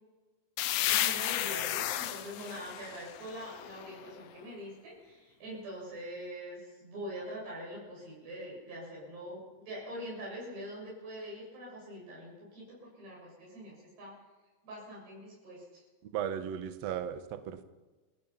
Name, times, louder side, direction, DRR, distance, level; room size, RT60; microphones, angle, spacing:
sound 1, 0.6-4.2, left 13 dB, 80° left, 3.0 m, -33 dB
voice 1, 0.8-14.2 14.6-15.8, equal, 65° right, -5 dB, 9.5 m, -44 dB
voice 2, 16.0-17.6, right 9 dB, 85° right, 9 dB, 1.4 m, -36 dB
28.5 x 16.0 x 5.8 m, 1.2 s
omnidirectional pair, 5.1 m